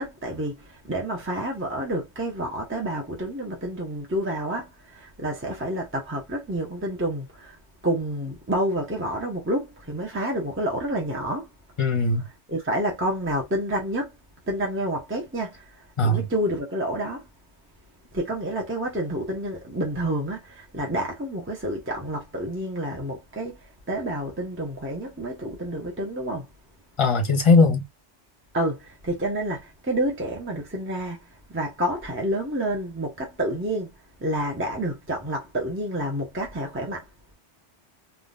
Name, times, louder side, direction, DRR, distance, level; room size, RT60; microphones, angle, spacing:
voice 1, 0.0-7.6 7.8-11.5 12.5-14.1 14.5-15.6 16.0-17.3 18.1-26.5 28.5-31.2 31.5-33.9 34.2-37.0, right 1 dB, 10° right, 0.9 m, -29 dB
voice 2, 11.8-12.2 16.0-16.2 27.0-27.8, left 3 dB, 30° left, 1.0 m, -19 dB
3.7 x 2.4 x 2.5 m
omnidirectional pair, 1.2 m